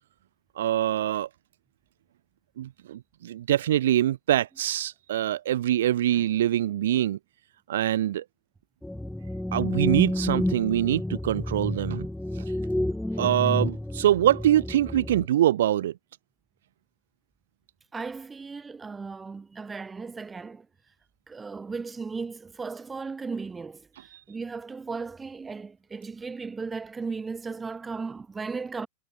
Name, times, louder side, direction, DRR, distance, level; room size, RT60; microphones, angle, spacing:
voice 1, 0.5-1.3 2.6-7.2 7.7-8.2 9.5-12.0 12.3-12.4 13.2-15.9 24.1-24.2, right 12 dB, 60° right, 1.6 m, -24 dB
sound 1, 8.8-15.3, left 1 dB, 5° left, 2.1 m, -30 dB
voice 2, 17.9-20.7 21.3-28.9, right 4 dB, 15° right, 7.1 m, -36 dB
figure-of-eight pair, 90°, 0 cm